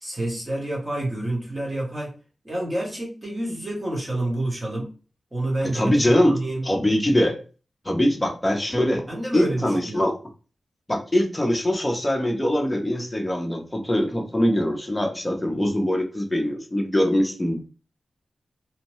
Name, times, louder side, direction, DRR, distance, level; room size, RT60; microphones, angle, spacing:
voice 1, 0.0-2.1 2.4-4.9 5.3-5.9 6.3-6.6 9.1-10.1, right 1 dB, 20° right, -3 dB, 0.9 m, -28 dB
voice 2, 5.7-6.4 6.6-7.4 7.8-9.0 9.3-10.1 10.9-17.7, left 1 dB, 15° left, 1 dB, 0.7 m, -22 dB
2.7 x 2.1 x 3.0 m, 0.35 s
wide cardioid pair, 90°, 0 cm